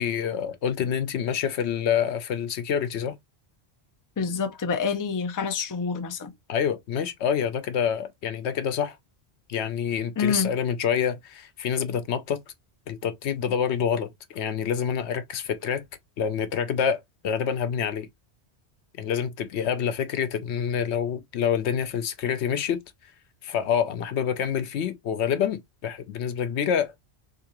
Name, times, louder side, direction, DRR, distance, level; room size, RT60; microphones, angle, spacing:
voice 1, 0.0-3.2 6.5-9.0 9.5-12.4 12.9-15.8 16.2-18.1 19.0-22.8 23.4-27.0, left 8 dB, 85° left, 0.9 m, -27 dB
voice 2, 4.2-6.3 10.2-10.5, left 6 dB, 30° left, 0.4 m, -27 dB
3.7 x 2.9 x 2.9 m
omnidirectional pair, 1.1 m